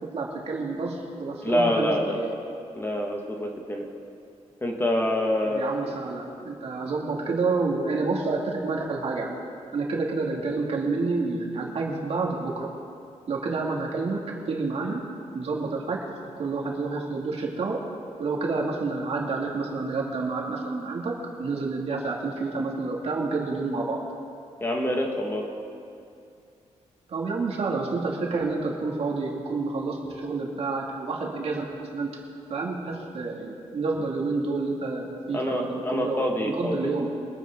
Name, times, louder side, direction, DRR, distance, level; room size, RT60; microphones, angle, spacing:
voice 1, 0.1-2.3 5.4-9.3 9.7-12.7 13.3-15.0 15.3-16.0 16.4-17.8 18.2-21.1 21.4-24.0 27.1-32.2 32.5-37.1, right 3 dB, 55° right, -2 dB, 2.4 m, -29 dB
voice 2, 1.4-2.2 2.7-3.9 4.6-5.7 24.6-25.4 35.3-36.9, left 1 dB, 20° left, 0 dB, 1.7 m, -26 dB
24.5 x 9.9 x 3.8 m, 2.5 s
cardioid pair, 110°, 12 cm